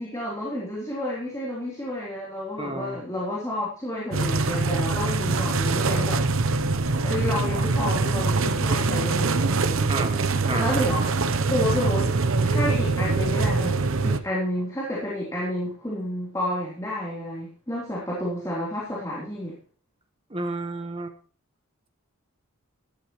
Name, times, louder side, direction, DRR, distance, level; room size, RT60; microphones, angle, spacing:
voice 1, 0.0-6.2 7.0-10.0 10.4-11.1 11.5-12.1 12.4-19.6, left 1 dB, 15° left, -5 dB, 3.6 m, -30 dB
voice 2, 2.6-3.0 7.0-7.1 9.5-10.8 20.3-21.2, right 2 dB, 25° right, 7 dB, 1.4 m, -32 dB
sound 1, 4.1-14.2, right 3 dB, 65° right, 0.9 m, -23 dB
13.5 x 12.5 x 3.2 m, 0.40 s
head